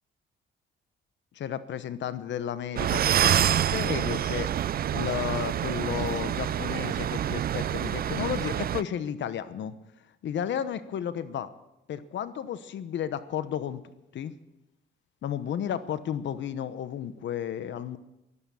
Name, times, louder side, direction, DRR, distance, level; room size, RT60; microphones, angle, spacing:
voice 1, 1.3-4.5 4.9-9.7 10.2-11.5 11.9-13.8 14.1-14.3 15.2-18.0, left 9 dB, 65° left, 14 dB, 1.0 m, -33 dB
sound 1, 2.8-8.8, right 10 dB, 50° right, 0.5 m, -27 dB
13.5 x 13.0 x 7.0 m, 0.93 s
cardioid pair, 90°, 20 cm